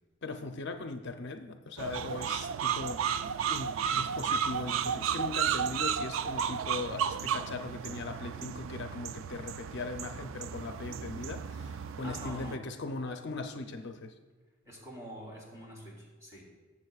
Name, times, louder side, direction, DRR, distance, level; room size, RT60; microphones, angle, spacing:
voice 1, 0.2-3.0 3.5-14.1, left 3 dB, 60° left, 6 dB, 0.6 m, -39 dB
sound 1, 1.8-12.6, right 8 dB, 70° right, 0.3 m, -33 dB
voice 2, 12.0-12.6 14.6-16.4, equal, 15° right, -4 dB, 3.3 m, -45 dB
18.5 x 7.4 x 2.4 m, 1.4 s
head